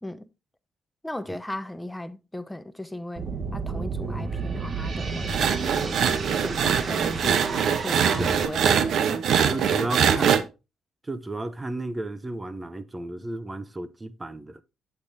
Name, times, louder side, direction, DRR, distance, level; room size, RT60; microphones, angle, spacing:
voice 1, 1.0-3.2 3.5-9.8, left 1 dB, 10° left, 0.8 m, -37 dB
sound 1, 3.2-8.4, right 4 dB, 45° right, 1.3 m, -31 dB
sound 2, 5.3-10.4, right 8 dB, 70° right, 0.9 m, -23 dB
voice 2, 9.5-10.5 11.0-14.6, right 2 dB, 20° right, 0.9 m, -33 dB
8.4 x 8.3 x 2.7 m
cardioid pair, 90°, 0 cm